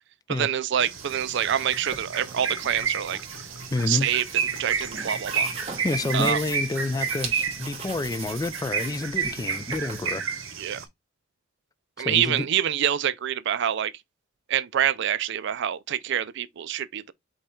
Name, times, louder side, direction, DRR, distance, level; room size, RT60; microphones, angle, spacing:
voice 1, 0.3-3.5 3.9-4.2 4.6-5.5 6.1-6.4 10.6-10.8 12.0-13.9 14.5-17.1, right 10 dB, 60° right, 0.4 m, -26 dB
sound 1, 0.8-10.8, right 6 dB, 75° right, 1.0 m, -31 dB
sound 2, 0.9-10.1, right 4 dB, 30° right, 1.3 m, -40 dB
sound 3, 1.7-6.4 6.7-6.8, left 4 dB, 70° left, 1.0 m, -49 dB
voice 2, 3.7-4.1 5.8-10.2 12.0-12.5, left 2 dB, 20° left, 0.3 m, -28 dB
5.3 x 2.3 x 4.3 m
head